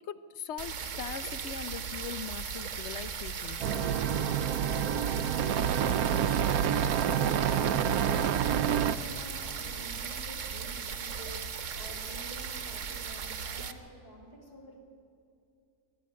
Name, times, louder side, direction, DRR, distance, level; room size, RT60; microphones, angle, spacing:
voice 1, 0.0-4.0, left 8 dB, 60° left, 14 dB, 0.9 m, -41 dB
sound 1, 0.6-13.7, right 6 dB, 60° right, 1.3 m, -37 dB
sound 2, 3.6-9.0, right 9 dB, 75° right, 1.1 m, -28 dB
voice 2, 4.7-14.8, equal, 25° left, -3 dB, 3.0 m, -49 dB
22.0 x 12.5 x 9.7 m, 2.5 s
omnidirectional pair, 1.6 m